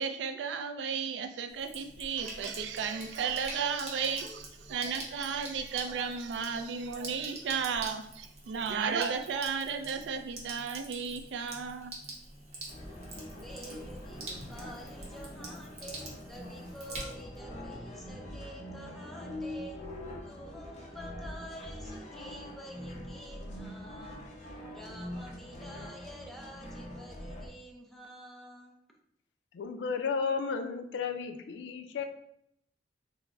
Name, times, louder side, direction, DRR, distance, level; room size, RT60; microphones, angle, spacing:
voice 1, 0.0-11.9, right 6 dB, 80° right, 8 dB, 0.3 m, -34 dB
Sink (filling or washing), 1.5-17.4, right 2 dB, 35° right, 0.8 m, -46 dB
sound 1, 12.7-27.5, left 1 dB, 40° left, 0.7 m, -44 dB
voice 2, 13.3-19.9 20.3-24.3 24.7-28.8, equal, ahead, -1 dB, 0.5 m, -48 dB
voice 3, 29.5-32.0, left 5 dB, 85° left, 7 dB, 0.4 m, -33 dB
3.6 x 2.0 x 3.3 m, 0.74 s
head